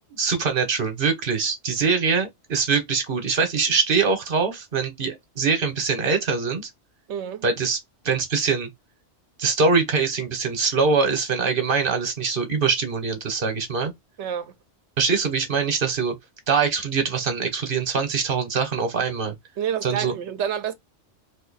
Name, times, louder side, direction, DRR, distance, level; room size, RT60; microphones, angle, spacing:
voice 1, 0.2-6.7 7.4-7.8 8.0-8.7 9.4-13.9 15.0-16.1 16.5-19.3 19.8-20.1, right 5 dB, 50° right, 1.0 m, -23 dB
voice 2, 7.1-7.4 14.2-14.5 19.6-20.7, right 8 dB, 70° right, 0.9 m, -28 dB
2.7 x 2.5 x 3.9 m
omnidirectional pair, 1.3 m